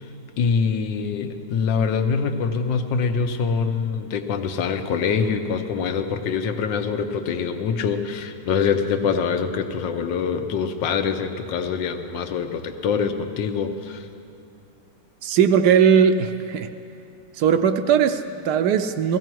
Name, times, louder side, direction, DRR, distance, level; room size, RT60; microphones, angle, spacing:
voice 1, 0.4-14.1, left 6 dB, 85° left, 7 dB, 1.5 m, -24 dB
voice 2, 15.2-16.7 17.4-19.2, right 7 dB, 75° right, 9 dB, 1.1 m, -19 dB
16.0 x 16.0 x 4.6 m, 2.6 s
omnidirectional pair, 1.9 m